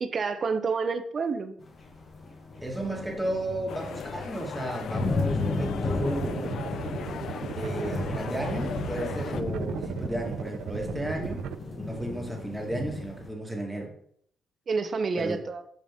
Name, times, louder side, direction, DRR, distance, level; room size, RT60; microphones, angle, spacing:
voice 1, 0.0-1.5 14.7-15.6, right 4 dB, 45° right, 9 dB, 0.7 m, -28 dB
sound 1, 1.6-13.3, left 3 dB, 45° left, 1.2 m, -34 dB
voice 2, 2.6-6.5 7.5-11.5 11.8-13.9 15.2-15.4, right 1 dB, 5° right, 0 dB, 1.6 m, -33 dB
sound 2, 3.7-9.4, left 7 dB, 65° left, 0.4 m, -39 dB
sound 3, 6.0-11.5, right 10 dB, 80° right, 0.3 m, -37 dB
5.2 x 5.1 x 3.6 m, 0.66 s
cardioid pair, 90°, 0 cm